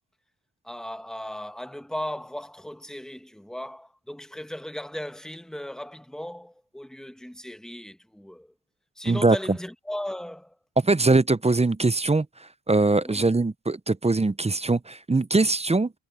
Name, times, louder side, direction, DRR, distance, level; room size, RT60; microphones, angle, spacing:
voice 1, 0.6-8.5 9.0-10.6 13.0-13.3, left 1 dB, ahead, 1.5 m, -37 dB
voice 2, 9.1-9.4 10.8-12.3 12.7-15.9, right 3 dB, 15° right, 0.4 m, -22 dB
wide cardioid pair, 115°, 46 cm